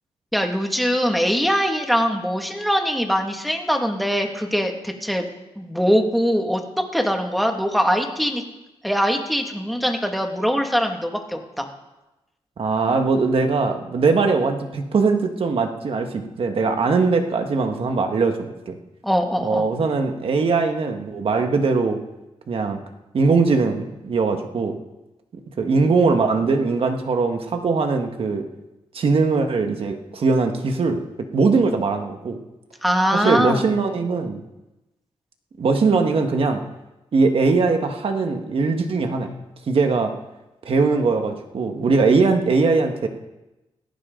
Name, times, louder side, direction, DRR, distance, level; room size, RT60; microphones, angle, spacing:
voice 1, 0.3-5.3 5.6-6.6 6.9-8.4 8.8-11.7 19.0-19.7 32.8-33.6, equal, ahead, 3 dB, 2.1 m, -22 dB
voice 2, 12.6-18.4 18.7-18.8 19.4-22.0 22.5-22.8 23.1-24.8 25.6-28.4 28.9-31.0 31.3-32.4 33.1-34.4 35.6-36.6 37.1-39.4 39.7-40.1 40.7-43.1, right 4 dB, 60° right, 5 dB, 1.7 m, -20 dB
17.0 x 14.5 x 4.0 m, 1.0 s
cardioid pair, 90°, 11 cm